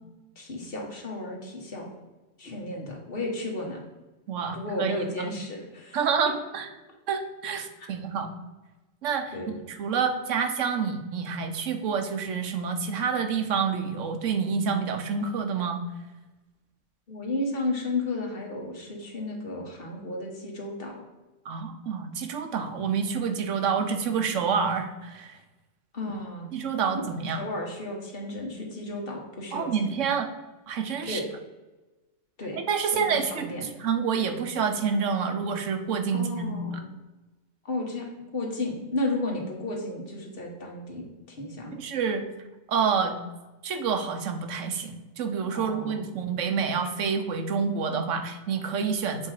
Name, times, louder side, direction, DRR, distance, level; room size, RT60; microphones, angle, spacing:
voice 1, 0.4-1.9 2.4-3.8 4.5-6.0 7.6-7.7 9.3-9.6 17.1-20.9 25.9-26.5 27.4-30.0 31.0-31.3 32.4-32.6 32.9-33.6 36.1-36.9 37.6-38.1 38.3-41.8 45.5-46.1, left 2 dB, 50° left, 0 dB, 1.5 m, -33 dB
voice 2, 4.3-5.3 5.9-6.7 7.1-8.3 9.0-9.3 9.7-15.8 21.4-25.4 26.5-27.5 29.5-30.3 30.7-31.2 32.5-33.5 33.8-36.8 41.8-42.2 42.7-43.2 43.6-49.3, right 6 dB, 90° right, 6 dB, 1.2 m, -28 dB
7.4 x 3.8 x 4.8 m, 1.1 s
omnidirectional pair, 1.2 m